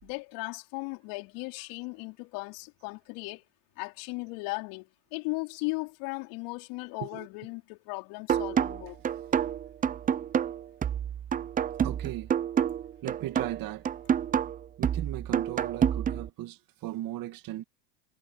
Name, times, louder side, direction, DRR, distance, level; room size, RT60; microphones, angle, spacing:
voice 1, 0.0-3.4 3.8-9.0, left 27 dB, 60° left, 4.5 m, -37 dB
sound 1, 8.3-16.3, right 8 dB, 20° right, 0.6 m, -28 dB
voice 2, 11.8-12.3 13.0-13.9 14.8-17.6, right 15 dB, 45° right, 2.0 m, -37 dB
supercardioid pair, 110°, 48 cm